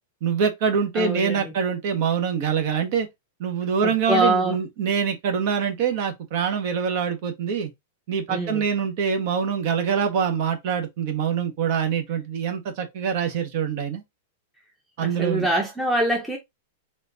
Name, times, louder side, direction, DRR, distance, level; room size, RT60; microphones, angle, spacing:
voice 1, 0.2-3.1 3.4-7.7 8.1-14.0 15.0-15.5, right 7 dB, 50° right, 1.2 m, -24 dB
voice 2, 0.9-1.5 3.8-4.6 8.3-8.6 15.0-16.4, right 1 dB, ahead, 0.8 m, -24 dB
4.3 x 2.6 x 3.8 m
supercardioid pair, 145°, 0 cm